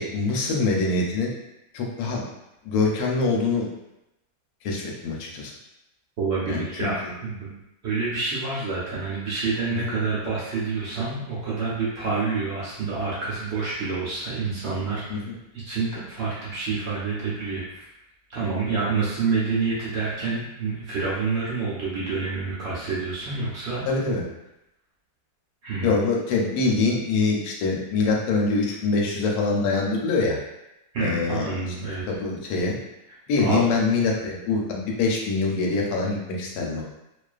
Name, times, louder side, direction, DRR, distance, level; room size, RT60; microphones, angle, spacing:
voice 1, 0.0-1.3 1.7-2.2 2.6-3.7 4.6-5.5 6.5-7.1 9.7-9.9 15.1-15.3 23.9-24.2 25.8-30.4 31.0-31.5 32.1-32.8 33.3-36.8, left 3 dB, 85° left, -1 dB, 1.1 m, -24 dB
voice 2, 6.2-7.5 7.8-15.0 15.6-17.9 18.3-23.9 25.6-26.0 30.9-32.0 33.4-33.6, right 4 dB, 60° right, -7 dB, 0.7 m, -28 dB
2.3 x 2.3 x 2.3 m, 0.89 s
omnidirectional pair, 1.6 m